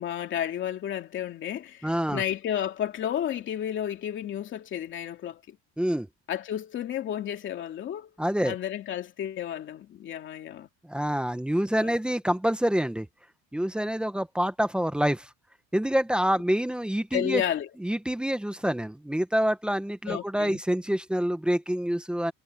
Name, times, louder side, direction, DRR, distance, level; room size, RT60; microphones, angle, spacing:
voice 1, 0.0-5.6 6.3-8.1 8.4-10.7 11.8-11.9 17.1-17.7 20.1-20.6, left 10 dB, 35° left, 2.6 m, -32 dB
voice 2, 1.8-2.2 5.8-6.1 8.2-8.6 10.8-13.1 13.5-15.3 15.7-17.4 17.8-22.3, equal, 5° right, 0.8 m, -27 dB
cardioid pair, 175°, 33 cm